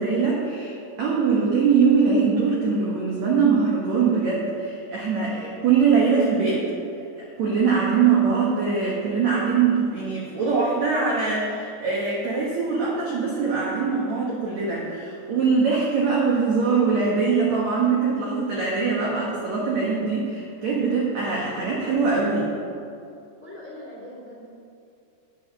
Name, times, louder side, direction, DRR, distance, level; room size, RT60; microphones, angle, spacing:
voice 1, 0.0-6.7 7.2-22.5, right 5 dB, 65° right, -4 dB, 1.8 m, -22 dB
voice 2, 23.4-24.5, left 1 dB, 5° left, -5 dB, 2.3 m, -41 dB
11.0 x 9.1 x 5.7 m, 2.6 s
omnidirectional pair, 5.0 m